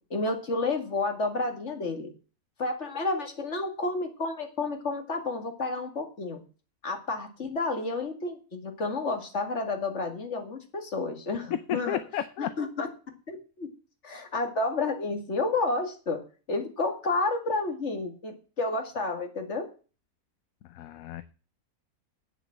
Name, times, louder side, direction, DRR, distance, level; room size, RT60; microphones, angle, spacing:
voice 1, 0.1-2.1 2.6-6.4 6.8-12.0 12.4-12.9 13.3-13.7 14.0-16.2 16.5-19.7, left 3 dB, 50° left, 4 dB, 2.4 m, -30 dB
voice 2, 11.5-12.5 20.6-21.2, left 10 dB, 70° left, 12 dB, 1.1 m, -32 dB
9.1 x 7.2 x 7.4 m, 0.36 s
omnidirectional pair, 1.6 m